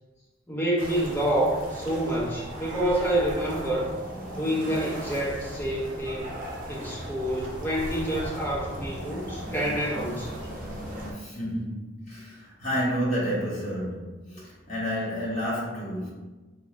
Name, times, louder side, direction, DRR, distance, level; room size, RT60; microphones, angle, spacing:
voice 1, 0.5-3.9 4.3-6.3 6.7-10.5, right 1 dB, 10° left, -6 dB, 0.7 m, -28 dB
sound 1, 0.8-11.1, equal, 45° right, 0.6 m, -37 dB
voice 2, 11.1-16.1, equal, 35° left, -7 dB, 1.1 m, -30 dB
3.0 x 2.2 x 3.0 m, 1.2 s
head